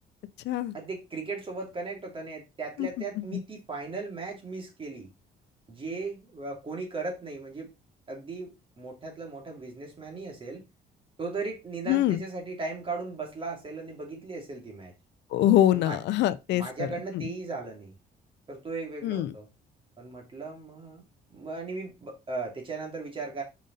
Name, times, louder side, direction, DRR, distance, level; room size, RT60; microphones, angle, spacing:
voice 1, 0.7-5.1 5.7-7.7 8.1-8.5 8.8-10.6 11.2-14.9 15.7-16.0 16.5-17.9 18.5-19.5 20.0-21.0 21.3-23.4, right 3 dB, 30° right, 2.6 m, -37 dB
voice 2, 11.9-12.2 15.3-16.9 17.1-17.3 19.0-19.3, left 13 dB, 85° left, 0.5 m, -24 dB
5.3 x 5.2 x 4.0 m
cardioid pair, 125°, 17 cm